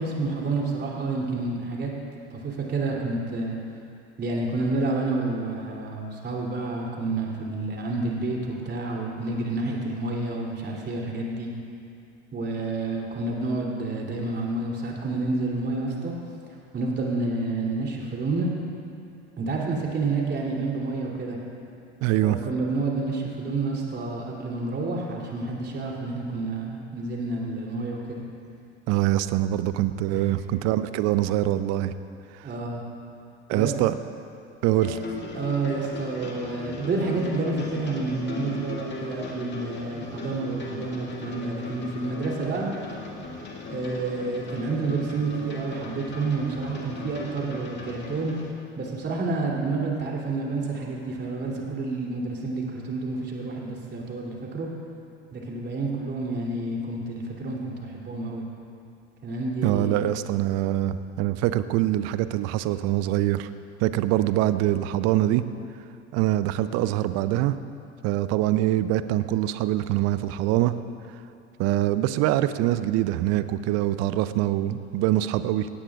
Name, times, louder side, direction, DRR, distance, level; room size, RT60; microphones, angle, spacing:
voice 1, 0.0-1.9 2.3-3.5 4.2-11.5 12.3-16.1 16.7-18.5 19.4-21.4 22.2-28.2 30.1-30.3 32.4-32.8 33.5-33.7 35.3-42.7 43.7-48.3 48.8-54.7 55.3-58.5 59.2-60.0, right 3 dB, 30° right, -2 dB, 3.2 m, -29 dB
voice 2, 22.0-22.4 28.9-31.9 33.5-33.9 34.6-35.0 59.6-63.5 63.8-65.4 66.1-67.6 68.0-70.7 71.6-75.7, right 14 dB, 45° right, 13 dB, 0.6 m, -24 dB
sound 1, 34.6-48.5, left 3 dB, 30° left, 2.2 m, -38 dB
17.5 x 17.5 x 2.5 m, 2.5 s
figure-of-eight pair, 70°, 35 cm